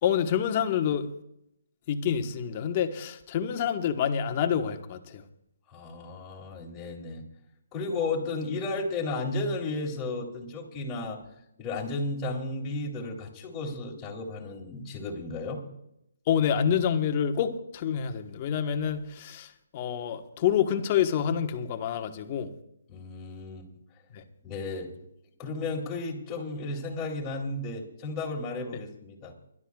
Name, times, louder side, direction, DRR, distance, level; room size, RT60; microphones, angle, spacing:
voice 1, 0.0-1.1 1.9-5.2 16.3-22.5 24.1-24.2, left 8 dB, 35° left, 6 dB, 1.3 m, -27 dB
voice 2, 5.7-7.2 7.7-11.2 11.6-15.6 22.9-23.7 24.4-24.9 25.4-29.3, left 3 dB, 15° left, -2 dB, 2.9 m, -33 dB
29.5 x 12.0 x 2.4 m, 0.79 s
hypercardioid pair, 155°, 0 cm